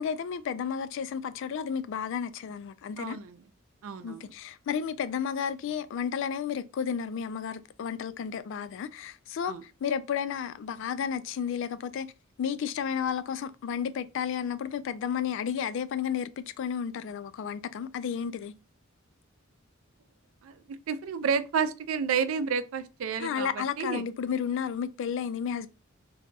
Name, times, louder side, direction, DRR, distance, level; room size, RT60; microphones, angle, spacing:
voice 1, 0.0-3.2 4.0-12.1 12.4-18.5 23.2-25.7, left 7 dB, 60° left, 0.3 m, -32 dB
voice 2, 3.0-3.4 3.8-4.3 9.4-9.6 20.4-24.0, right 6 dB, 80° right, 0.4 m, -31 dB
2.7 x 2.2 x 3.9 m
head